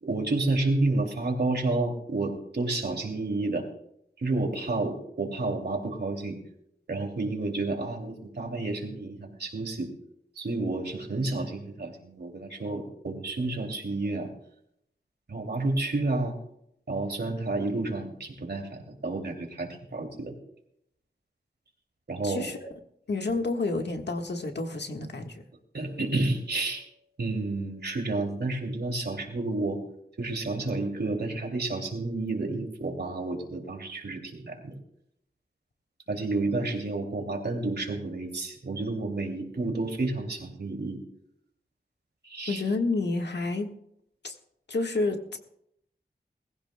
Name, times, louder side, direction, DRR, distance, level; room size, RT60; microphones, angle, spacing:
voice 1, 0.0-3.6 4.2-6.4 6.9-9.9 10.4-14.3 15.3-16.4 16.9-20.3 22.1-22.5 25.7-26.8 27.2-29.8 30.2-34.7 36.1-41.0 42.2-42.6, right 2 dB, 70° right, 3 dB, 2.6 m, -30 dB
voice 2, 22.2-22.6 23.1-25.4 42.5-43.7 44.2-44.3 44.7-45.4, left 3 dB, 80° left, 4 dB, 1.5 m, -29 dB
20.5 x 15.0 x 2.2 m, 0.74 s
wide cardioid pair, 75°, 17 cm